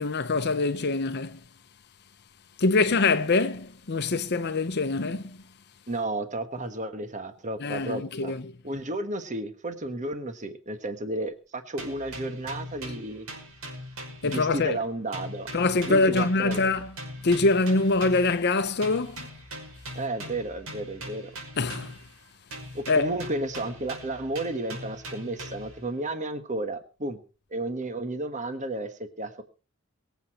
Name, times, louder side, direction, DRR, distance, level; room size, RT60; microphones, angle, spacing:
voice 1, 0.0-1.4 2.6-5.4 7.6-8.5 14.2-14.8 15.5-16.9 17.2-19.3 21.6-21.9 22.9-23.1, left 3 dB, 55° left, 0.8 m, -24 dB
voice 2, 5.9-8.3 8.6-13.3 14.2-15.5 15.9-16.7 19.9-21.3 22.7-27.2 27.5-29.4, right 2 dB, 35° right, 1.4 m, -32 dB
sound 1, 11.8-14.9 15.1-18.4 18.8-22.2 22.5-25.8, equal, 85° right, 5.8 m, -41 dB
23.0 x 8.3 x 4.3 m
head